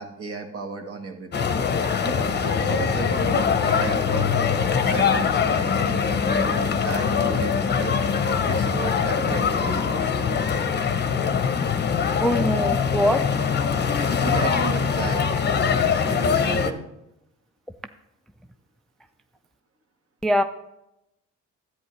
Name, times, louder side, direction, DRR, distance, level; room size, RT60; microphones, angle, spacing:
voice 1, 0.0-1.5 1.8-4.3 4.8-8.0 8.4-10.3 14.2-16.9, right 3 dB, 50° right, 4 dB, 1.5 m, -34 dB
sound 1, 1.3-16.7, left 6 dB, 35° left, 0.7 m, -23 dB
voice 2, 12.2-13.3 20.2-20.4, equal, ahead, 9 dB, 0.3 m, -22 dB
10.5 x 8.8 x 3.2 m, 0.87 s
cardioid pair, 90°, 30 cm